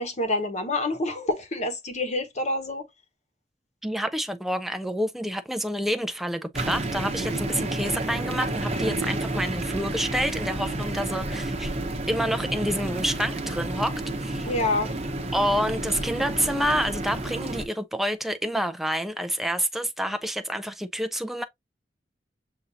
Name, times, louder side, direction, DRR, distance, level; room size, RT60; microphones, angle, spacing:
voice 1, 0.0-2.9 14.4-14.9, left 2 dB, 40° left, 1.0 m, -27 dB
voice 2, 3.8-11.8 12.1-14.5 15.3-21.4, equal, ahead, 0.3 m, -28 dB
sound 1, 6.5-17.6, right 2 dB, 35° right, 0.8 m, -30 dB
6.7 x 2.6 x 2.7 m
head